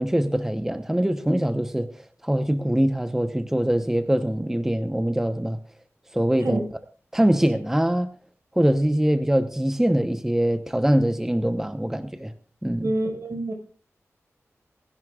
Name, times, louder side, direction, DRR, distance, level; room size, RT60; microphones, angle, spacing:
voice 1, 0.0-5.6 6.1-6.6 7.1-8.1 8.5-12.3 12.6-12.9, right 1 dB, 10° right, 0.8 m, -23 dB
voice 2, 12.8-13.5, right 2 dB, 70° right, 4.8 m, -26 dB
27.5 x 11.0 x 2.4 m
wide cardioid pair, 90°, 5 cm